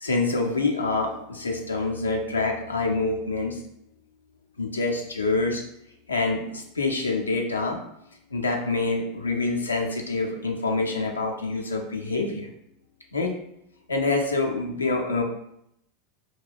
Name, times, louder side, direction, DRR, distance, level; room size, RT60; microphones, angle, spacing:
voice 1, 0.0-3.6 4.6-5.6 6.1-7.8 8.3-12.5 13.1-13.3 13.9-15.2, left 3 dB, 85° left, 1 dB, 0.4 m, -26 dB
2.2 x 2.2 x 3.3 m, 0.77 s
figure-of-eight pair, 85°, 0 cm